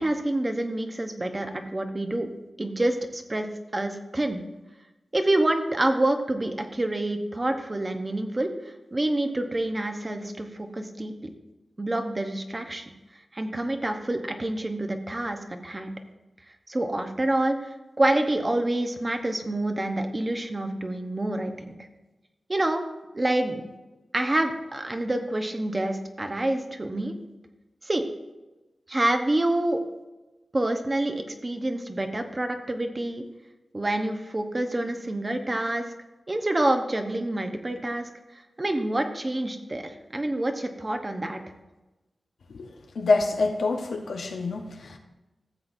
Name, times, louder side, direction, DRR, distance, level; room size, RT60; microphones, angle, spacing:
voice 1, 0.0-2.3 2.6-3.5 3.7-4.4 5.1-11.3 11.8-12.8 13.3-15.9 16.7-17.6 18.0-21.8 22.5-22.8 23.1-23.7 24.1-27.2 27.8-28.1 28.9-29.8 30.5-33.2 33.7-35.9 36.3-38.1 38.6-41.4, right 1 dB, 25° right, 6 dB, 0.9 m, -27 dB
voice 2, 42.9-45.0, left 3 dB, 85° left, 2 dB, 1.1 m, -26 dB
15.0 x 7.6 x 2.7 m, 1.1 s
wide cardioid pair, 100°, 0 cm